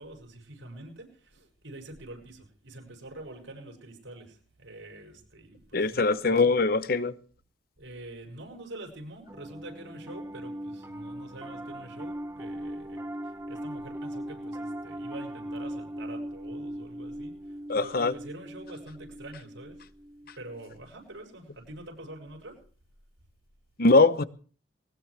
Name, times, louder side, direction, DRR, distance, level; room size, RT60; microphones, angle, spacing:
voice 1, 0.0-6.5 7.8-19.9 20.4-22.6, right 1 dB, 85° right, 7.0 m, -45 dB
voice 2, 5.7-7.1 17.7-18.1 23.8-24.2, left 3 dB, 50° left, 0.8 m, -22 dB
Piano, 9.3-20.8, right 1 dB, 15° right, 1.3 m, -39 dB
21.0 x 20.0 x 3.4 m
head